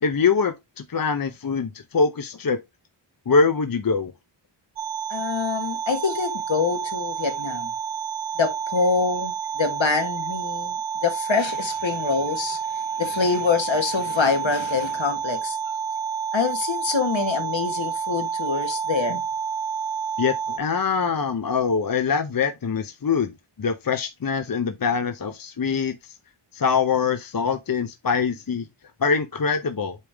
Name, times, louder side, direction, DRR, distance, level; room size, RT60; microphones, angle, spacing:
voice 1, 0.0-2.6 3.3-4.1 20.2-23.3 23.6-26.1 26.5-28.7 29.0-30.0, left 5 dB, 45° left, 0.8 m, -23 dB
sound 1, 4.8-20.6, right 6 dB, 65° right, 0.7 m, -29 dB
voice 2, 5.1-7.7 8.3-15.6 16.3-19.2, left 5 dB, 65° left, 1.8 m, -25 dB
8.3 x 3.5 x 3.4 m
cardioid pair, 45°, 49 cm